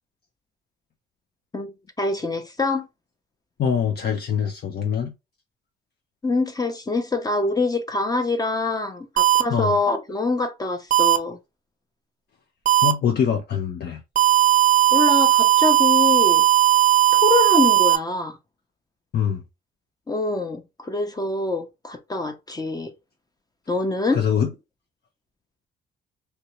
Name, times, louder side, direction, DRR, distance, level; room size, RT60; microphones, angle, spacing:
voice 1, 1.5-2.9 6.2-11.4 14.9-16.4 17.1-18.4 20.1-22.9 23.7-24.2, left 3 dB, 20° left, 0.7 m, -25 dB
voice 2, 3.6-5.1 9.5-9.8 12.8-14.0 19.1-19.4 24.1-24.5, left 8 dB, 55° left, 0.6 m, -23 dB
sound 1, 9.2-9.4 10.9-11.2 12.7-12.9 14.2-18.0, right 14 dB, 40° right, 0.5 m, -17 dB
2.9 x 2.7 x 3.0 m
cardioid pair, 90°, 20 cm